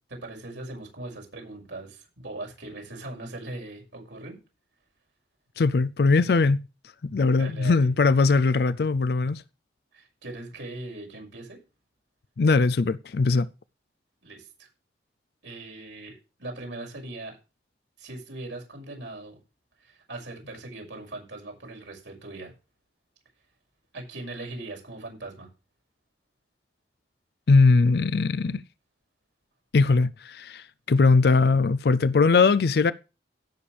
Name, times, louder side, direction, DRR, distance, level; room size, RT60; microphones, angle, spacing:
voice 1, 0.1-4.4 7.3-7.9 9.9-11.6 14.2-14.7 15.4-17.4 18.0-19.4 19.8-22.5 23.9-25.5, right 2 dB, 90° right, 6.2 m, -40 dB
voice 2, 5.6-6.6 7.0-9.4 12.4-13.5 27.5-28.6 29.7-32.9, left 4 dB, 60° left, 0.4 m, -20 dB
17.0 x 7.1 x 3.3 m
head